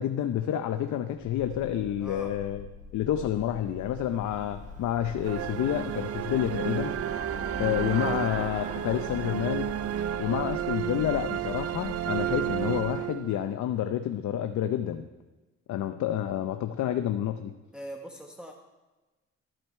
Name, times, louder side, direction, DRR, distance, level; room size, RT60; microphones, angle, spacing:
voice 1, 0.0-2.6 2.9-7.0 7.6-9.7 10.2-15.0 15.7-17.5, left 11 dB, 70° left, 8 dB, 0.7 m, -29 dB
sound 1, 1.2-12.9, left 3 dB, 40° left, 2.0 m, -45 dB
voice 2, 2.0-2.3 8.1-8.3 17.7-18.5, equal, 5° right, 0 dB, 1.2 m, -42 dB
Traffic noise roadway noise / Bicycle, 2.9-12.1, right 2 dB, 25° right, 1.6 m, -43 dB
sound 2, 5.2-13.6, right 12 dB, 55° right, 0.4 m, -32 dB
13.0 x 7.7 x 4.4 m, 1.2 s
cardioid pair, 90°, 30 cm